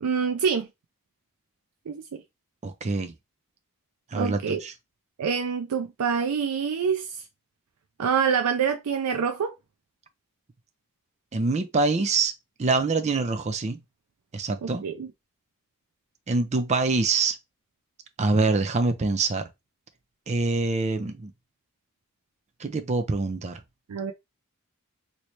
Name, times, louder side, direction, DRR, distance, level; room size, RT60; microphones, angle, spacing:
voice 1, 0.0-0.7 1.9-2.2 4.1-4.6 5.2-7.1 8.0-9.5 14.6-15.1 23.9-24.1, right 6 dB, 90° right, 0.4 m, -26 dB
voice 2, 2.6-3.1 4.1-4.7 11.3-12.3 12.6-13.8 14.3-14.8 16.3-17.4 18.2-19.5 20.3-21.3 22.6-23.6, right 3 dB, 30° right, 0.4 m, -25 dB
3.1 x 2.8 x 3.0 m
head